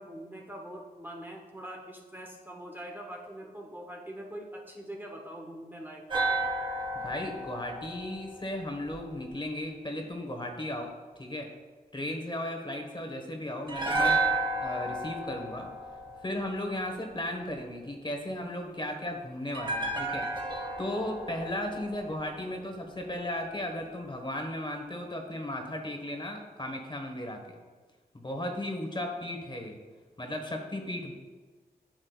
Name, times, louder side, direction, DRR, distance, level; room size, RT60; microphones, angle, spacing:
voice 1, 0.0-6.0, right 1 dB, 10° right, 0 dB, 1.0 m, -43 dB
sound 1, 6.1-9.3 13.7-16.9 19.5-22.8 23.0-23.2, right 2 dB, 30° right, 1.6 m, -32 dB
voice 2, 6.9-10.9 11.2-11.5 11.9-14.2 14.6-15.7 16.2-20.2 20.8-27.4 28.1-29.8 30.2-31.1, left 1 dB, 30° left, 3 dB, 1.3 m, -35 dB
10.5 x 6.3 x 2.4 m, 1.4 s
cardioid pair, 50°, 17 cm